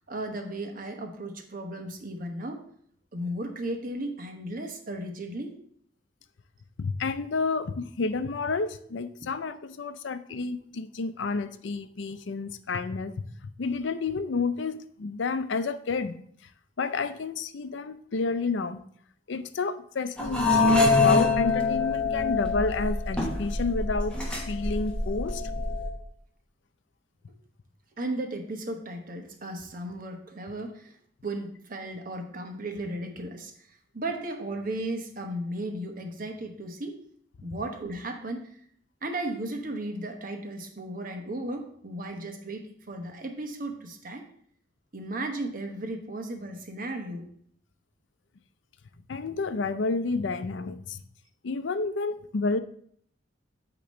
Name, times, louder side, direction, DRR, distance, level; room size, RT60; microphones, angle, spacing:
voice 1, 0.1-2.6 3.1-5.6 28.0-30.9 31.2-37.0 37.4-38.5 39.0-44.2 44.9-47.3, right 1 dB, 50° right, 4 dB, 1.0 m, -35 dB
voice 2, 6.8-13.1 13.4-16.2 16.8-18.8 19.3-24.2 24.5-25.4 49.1-51.0 51.4-52.6, left 4 dB, 75° left, 11 dB, 0.5 m, -30 dB
sound 1, 20.2-25.9, left 3 dB, 5° left, 1.2 m, -25 dB
8.5 x 3.0 x 6.2 m, 0.63 s
head